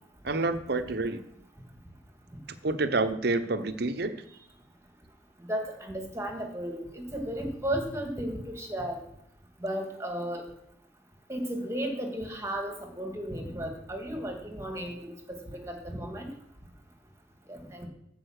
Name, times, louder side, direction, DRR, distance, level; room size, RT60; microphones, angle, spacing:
voice 1, 0.2-1.2 2.6-4.2, right 3 dB, 60° right, 12 dB, 0.9 m, -28 dB
voice 2, 5.5-9.0 9.6-10.5 11.3-16.3 17.5-17.9, right 1 dB, 15° right, 3 dB, 2.2 m, -34 dB
14.5 x 5.4 x 6.5 m, 0.76 s
head